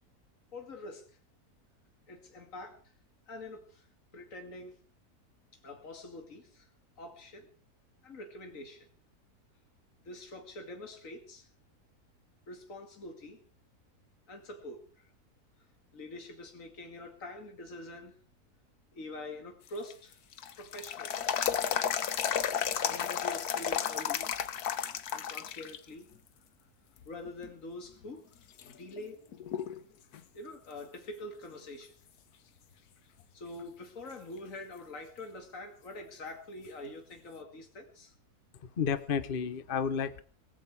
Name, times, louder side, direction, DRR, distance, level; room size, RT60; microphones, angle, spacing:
voice 1, 0.5-1.2 2.1-2.9 3.3-3.9 4.1-4.8 5.6-6.7 7.0-7.5 8.0-8.9 10.0-11.5 12.5-13.4 14.3-15.1 15.9-18.2 18.9-20.2 20.5-21.4 22.8-24.3 25.1-26.1 27.0-28.2 28.6-29.2 30.3-32.0 33.3-38.1, left 2 dB, 55° left, 4 dB, 2.7 m, -45 dB
sound 1, 19.7-25.8 26.2-26.3 27.0-27.5 28.0-28.1 28.6-29.8 30.1-30.2 33.6-33.7 36.7-36.8, left 9 dB, 80° left, 1.5 m, -33 dB
voice 2, 38.6-40.2, left 7 dB, 40° left, 13 dB, 1.0 m, -31 dB
18.0 x 15.5 x 4.8 m, 0.41 s
omnidirectional pair, 1.6 m